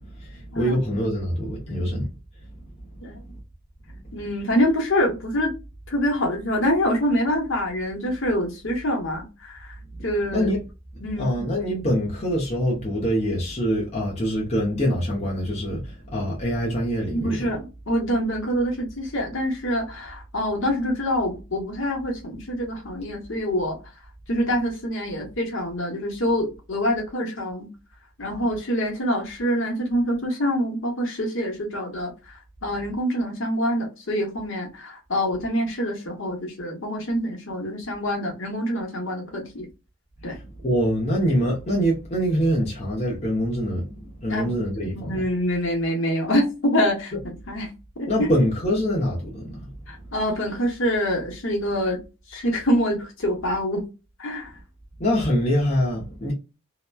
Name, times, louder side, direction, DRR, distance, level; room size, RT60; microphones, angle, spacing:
voice 1, 0.1-2.1 10.0-10.1 10.3-10.6 11.2-17.5 40.3-45.2 48.1-49.7 55.0-56.3, equal, 30° left, 0.7 m, -24 dB
voice 2, 4.1-5.5 5.9-9.8 10.0-10.5 11.0-11.4 17.1-23.8 24.3-27.7 28.2-39.7 40.2-40.4 44.3-47.1 47.5-47.7 48.0-48.3 49.9-52.0 52.3-53.8 54.2-54.5, equal, 65° left, 1.0 m, -25 dB
2.9 x 2.1 x 2.2 m
head